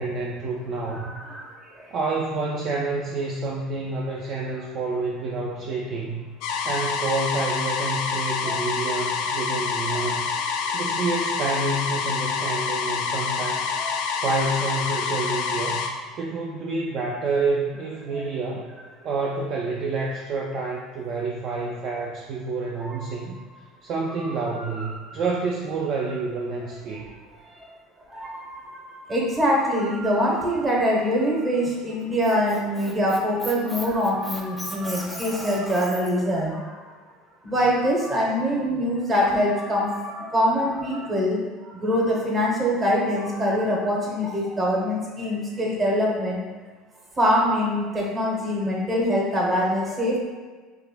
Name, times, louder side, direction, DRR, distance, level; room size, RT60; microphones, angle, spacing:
voice 1, 0.0-1.1 1.9-6.3 6.6-13.8 14.2-15.8 16.2-18.7 19.0-23.4 23.8-27.1, right 3 dB, 50° right, -2 dB, 0.4 m, -28 dB
voice 2, 1.0-1.9 8.5-8.6 13.8-13.9 18.1-18.2 22.8-23.0 24.2-24.7 25.0-25.1 27.4-27.5 28.1-36.6 37.4-46.4 47.2-50.2, equal, 25° right, -3 dB, 1.0 m, -24 dB
sound 1, 6.4-15.9, left 5 dB, 60° left, 0.3 m, -27 dB
Squeak, 32.0-36.2, left 1 dB, 5° left, 0.5 m, -37 dB
4.7 x 2.6 x 2.2 m, 1.4 s
figure-of-eight pair, 70°, 0 cm